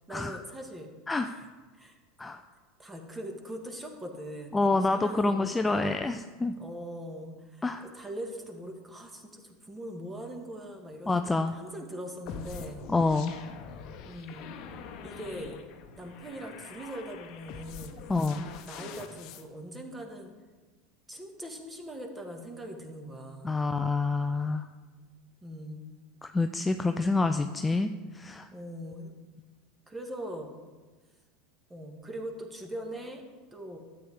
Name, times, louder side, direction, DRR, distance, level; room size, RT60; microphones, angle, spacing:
voice 1, 0.1-0.9 1.2-1.5 1.8-2.0 2.8-6.1 6.4-7.6 7.9-12.9 14.0-14.5 15.0-15.6 15.9-18.1 18.7-20.3 21.1-23.6 25.4-25.9 28.5-29.1 29.9-30.5 31.7-33.2 33.5-33.8, equal, 15° right, 3 dB, 1.8 m, -41 dB
voice 2, 4.5-6.6 7.6-7.8 11.1-11.6 12.9-13.3 18.1-18.5 23.4-24.7 26.2-28.5, left 3 dB, 15° left, 7 dB, 0.4 m, -27 dB
sound 1, 12.3-19.4, left 6 dB, 55° left, 0.9 m, -45 dB
12.5 x 8.1 x 3.6 m, 1.3 s
hypercardioid pair, 80°, 0 cm